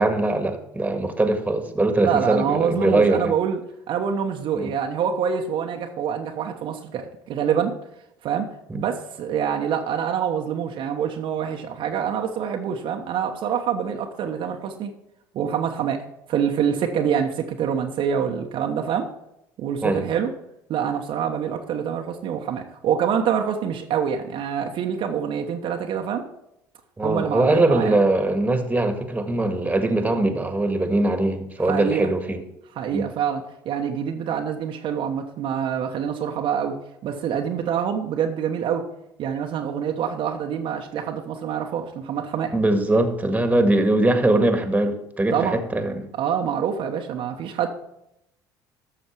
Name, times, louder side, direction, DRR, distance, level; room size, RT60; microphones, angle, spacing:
voice 1, 0.0-3.3 4.5-4.7 8.7-8.8 19.8-20.1 27.0-32.4 32.9-33.1 42.5-46.1, right 2 dB, 15° right, 7 dB, 1.8 m, -21 dB
voice 2, 2.0-3.6 3.9-7.8 8.2-8.5 8.7-14.9 15.3-16.0 16.3-19.1 19.6-20.3 20.7-26.2 27.0-28.0 31.7-32.1 32.8-36.8 37.0-38.8 39.2-42.5 45.3-45.6 46.1-47.7, right 8 dB, 55° right, 3 dB, 1.1 m, -26 dB
12.5 x 6.4 x 4.6 m, 0.81 s
hypercardioid pair, 65°, 10 cm